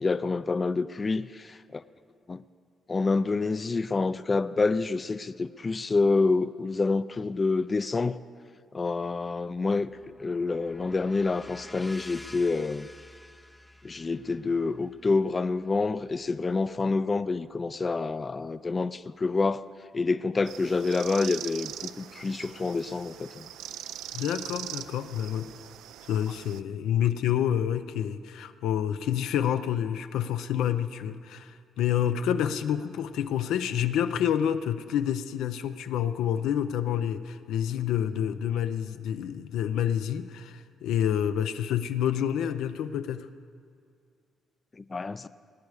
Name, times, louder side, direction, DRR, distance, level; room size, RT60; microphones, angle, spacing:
voice 1, 0.0-1.8 2.3-2.4 2.9-8.2 8.7-9.9 10.2-12.9 13.8-19.6 19.9-21.7 22.0-23.5 44.8-45.3, left 3 dB, 30° left, 0.3 m, -27 dB
sound 1, 9.5-17.4, left 1 dB, 10° left, 0.8 m, -50 dB
sound 2, 20.5-26.6, right 11 dB, 85° right, 0.4 m, -41 dB
voice 2, 24.1-25.5 26.0-43.3, left 9 dB, 85° left, 0.5 m, -28 dB
20.0 x 9.4 x 4.9 m
cardioid pair, 90°, 0 cm